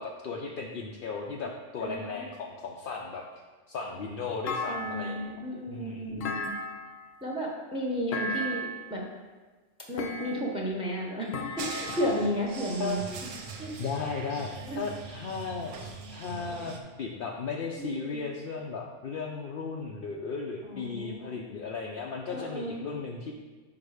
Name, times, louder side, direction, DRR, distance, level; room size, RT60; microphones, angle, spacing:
voice 1, 0.0-3.2 3.7-5.3 5.7-6.1 12.8-13.0 13.8-14.5 14.7-23.3, left 4 dB, 55° left, -1 dB, 0.7 m, -36 dB
voice 2, 1.8-2.2 4.7-6.5 7.2-9.0 9.9-11.3 11.6-13.0 13.6-13.7 14.6-14.8 17.8-18.2 20.6-21.5 22.3-22.8, equal, 5° right, -1 dB, 0.8 m, -33 dB
Thump thud, 4.5-5.4 6.2-7.1 8.1-8.9 10.0-10.7 11.3-12.4, left 1 dB, 80° left, 1.0 m, -35 dB
sound 1, 11.6-16.8, right 4 dB, 75° right, 1.1 m, -41 dB
5.8 x 4.8 x 4.9 m, 1.3 s
omnidirectional pair, 1.3 m